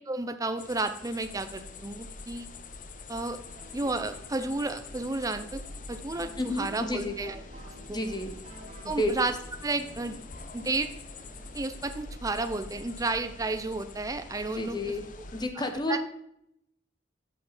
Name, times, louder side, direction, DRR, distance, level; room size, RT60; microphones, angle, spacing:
voice 1, 0.1-2.5 3.1-3.4 3.7-5.6 5.9-7.4 7.9-8.0 8.8-9.3 9.6-10.2 10.5-10.9 11.5-14.8 15.6-16.0, right 2 dB, 20° right, 9 dB, 0.5 m, -32 dB
sound 1, 0.6-15.5, left 6 dB, 45° left, 0.5 m, -48 dB
sound 2, 1.2-15.5, equal, 85° right, 2.2 m, -47 dB
sound 3, 3.4-13.0, right 1 dB, 35° right, 0.9 m, -52 dB
voice 2, 6.4-7.2 7.9-8.3 8.8-9.1 14.5-15.1 15.3-16.0, left 1 dB, 25° left, 6 dB, 0.9 m, -31 dB
8.3 x 5.6 x 4.1 m, 0.77 s
head